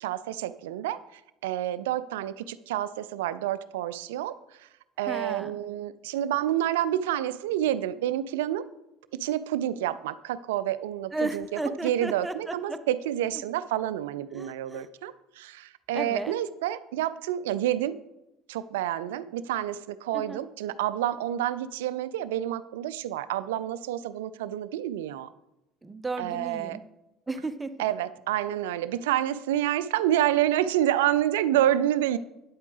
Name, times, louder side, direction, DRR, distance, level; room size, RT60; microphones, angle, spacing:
voice 1, 0.0-4.7 5.0-8.6 9.1-11.4 11.8-18.0 18.5-25.3 26.2-26.8 27.8-32.2, right 12 dB, 65° right, 15 dB, 0.3 m, -28 dB
voice 2, 5.1-5.5 11.1-12.8 14.3-14.9 15.9-16.3 20.1-20.4 25.8-26.8 27.3-27.8, right 2 dB, 15° right, 11 dB, 0.6 m, -34 dB
9.4 x 8.2 x 3.3 m, 0.92 s
figure-of-eight pair, 65°, 0 cm